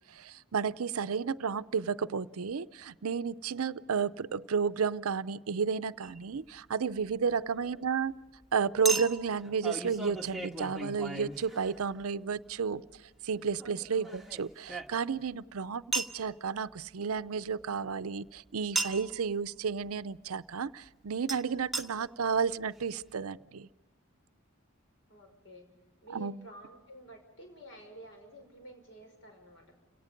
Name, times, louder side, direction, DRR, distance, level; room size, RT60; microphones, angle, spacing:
voice 1, 0.1-8.1 8.5-12.8 13.2-23.7 26.1-26.4, right 6 dB, 90° right, 17 dB, 0.6 m, -32 dB
Chink clink, 6.0-6.2 8.9-12.0 13.6-15.3 15.9-16.2 18.8-19.1 21.3-21.4 21.7-21.9 22.5-22.6 22.8-22.9, right 2 dB, ahead, 1.3 m, -36 dB
voice 2, 25.1-25.7 26.0-29.7, right 1 dB, 60° left, 3 dB, 5.6 m, -51 dB
29.5 x 18.0 x 5.2 m, 1.2 s
head